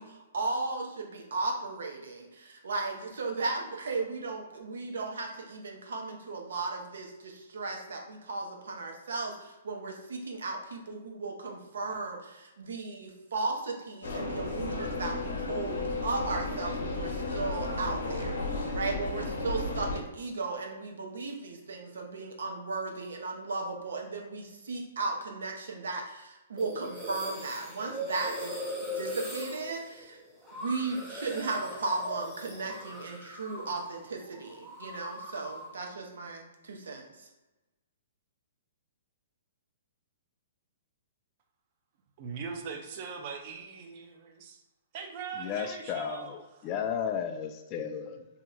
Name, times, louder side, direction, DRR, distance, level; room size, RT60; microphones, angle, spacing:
voice 1, 0.0-18.4 18.7-28.5 28.8-30.2 30.5-37.3, right 3 dB, 80° right, 0.7 m, -36 dB
sound 1, 14.0-20.0, left 2 dB, 70° left, 0.8 m, -33 dB
sound 2, 26.6-34.0 34.2-35.8, equal, ahead, 0.7 m, -40 dB
voice 2, 42.2-44.6 44.9-46.3, right 6 dB, 45° right, 0.5 m, -41 dB
voice 3, 45.4-46.4 46.6-48.3, left 7 dB, 30° left, 0.3 m, -33 dB
2.8 x 2.1 x 3.8 m
hypercardioid pair, 145°, 0 cm